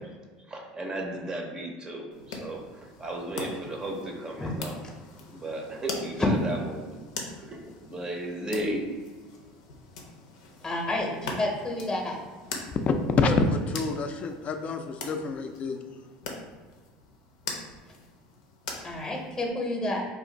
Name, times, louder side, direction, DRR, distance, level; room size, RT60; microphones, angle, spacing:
voice 1, 0.5-2.6 3.0-4.8 5.3-7.0 7.4-8.8, right 1 dB, 20° right, 0 dB, 0.6 m, -34 dB
sound 1, 2.1-19.5, left 3 dB, 90° left, 0.6 m, -42 dB
voice 2, 10.6-12.2 18.8-20.1, left 1 dB, 20° left, 0 dB, 0.7 m, -30 dB
voice 3, 12.9-15.8, left 3 dB, 40° left, 6 dB, 0.4 m, -27 dB
2.5 x 2.5 x 3.8 m, 1.4 s
supercardioid pair, 100°, 4 cm